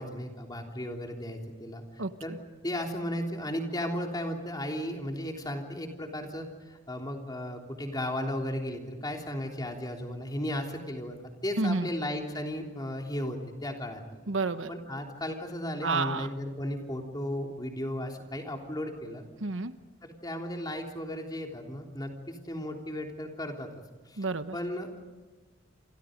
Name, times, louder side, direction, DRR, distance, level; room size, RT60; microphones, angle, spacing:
voice 1, 0.0-1.8 2.2-2.3 2.6-14.2 14.7-19.2 20.0-23.7 24.1-24.2 24.5-25.0, left 1 dB, 20° left, 2 dB, 3.4 m, -35 dB
voice 2, 2.0-2.4 11.6-11.9 14.3-14.7 15.8-16.3 19.4-19.7 24.2-24.6, right 3 dB, 75° right, 11 dB, 1.1 m, -30 dB
28.5 x 27.5 x 5.2 m, 1.2 s
head